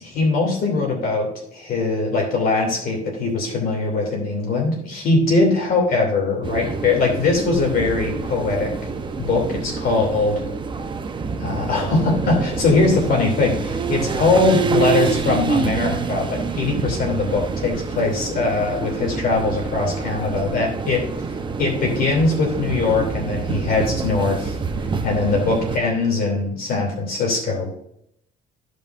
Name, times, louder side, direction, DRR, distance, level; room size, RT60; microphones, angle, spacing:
voice 1, 0.0-8.7 9.2-10.5 11.4-21.0 21.6-24.6 25.0-27.7, left 3 dB, 60° left, 0 dB, 2.9 m, -21 dB
sound 1, 6.4-25.8, right 5 dB, 30° right, 0.8 m, -27 dB
14.5 x 5.4 x 2.6 m, 0.71 s
cardioid pair, 110°, 17 cm